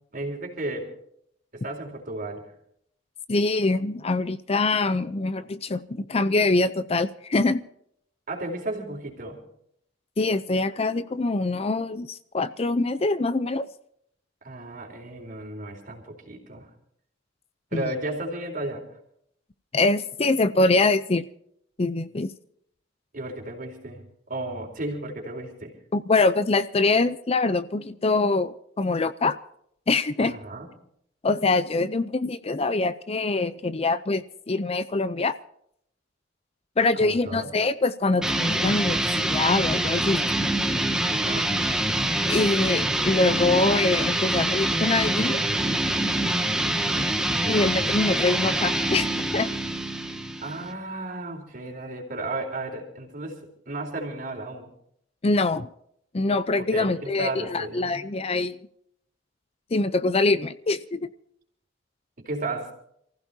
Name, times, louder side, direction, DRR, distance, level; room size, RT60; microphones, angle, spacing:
voice 1, 0.1-0.9 1.5-2.5 8.3-9.4 14.4-16.7 17.7-18.8 23.1-25.7 30.2-30.7 36.9-37.5 41.1-41.6 46.8-47.2 50.4-54.7 56.6-58.1 62.2-62.7, right 2 dB, 50° right, 4.0 m, -34 dB
voice 2, 3.3-7.6 10.2-13.7 17.7-17.9 19.7-21.2 21.8-22.3 25.9-29.4 29.9-30.3 31.2-35.3 36.8-40.3 42.3-45.4 47.5-49.5 55.2-55.7 56.1-58.6 59.7-61.1, left 3 dB, 35° left, 0.6 m, -24 dB
sound 1, 38.2-50.7, right 1 dB, 5° right, 1.8 m, -25 dB
28.5 x 15.5 x 2.8 m
head